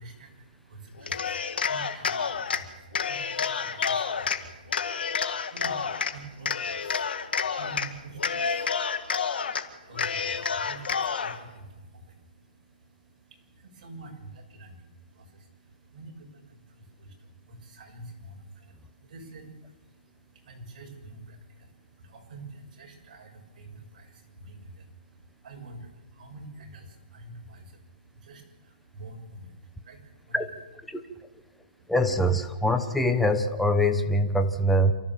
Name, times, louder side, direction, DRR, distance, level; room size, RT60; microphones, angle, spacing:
voice 1, 0.0-30.4 30.9-31.0 31.5-31.9, right 2 dB, 45° right, 1 dB, 6.8 m, -47 dB
Cheering, 1.0-2.6 2.9-4.4 4.7-6.1 6.5-7.9 8.2-9.6 10.0-11.4, left 6 dB, 80° left, 2.1 m, -29 dB
voice 2, 31.9-34.9, equal, ahead, 6 dB, 1.0 m, -23 dB
28.0 x 14.0 x 7.5 m, 1.1 s
hypercardioid pair, 165°, 5 cm